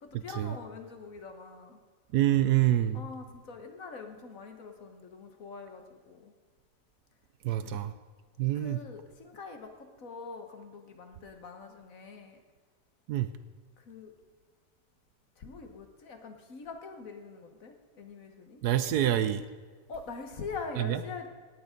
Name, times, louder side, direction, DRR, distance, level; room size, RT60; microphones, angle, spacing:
voice 1, 0.0-1.8 2.2-2.6 2.9-6.3 7.7-7.8 8.5-12.4 13.8-14.1 15.4-18.6 19.9-21.3, left 4 dB, 55° left, 5 dB, 1.5 m, -44 dB
voice 2, 2.1-3.0 7.4-7.9 8.4-8.8 13.1-13.3 18.6-19.4 20.8-21.0, right 13 dB, 70° right, 12 dB, 1.0 m, -26 dB
17.5 x 8.8 x 5.2 m, 1.5 s
omnidirectional pair, 1.9 m